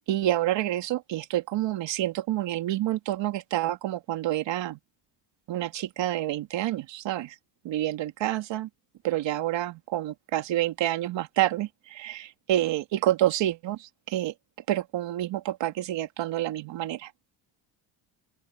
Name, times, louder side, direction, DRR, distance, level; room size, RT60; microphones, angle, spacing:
voice 1, 0.1-4.8 5.5-7.4 7.6-8.7 9.0-14.3 14.7-17.1, right 14 dB, 65° right, 2.3 m, -28 dB
open air
cardioid pair, 125°, 47 cm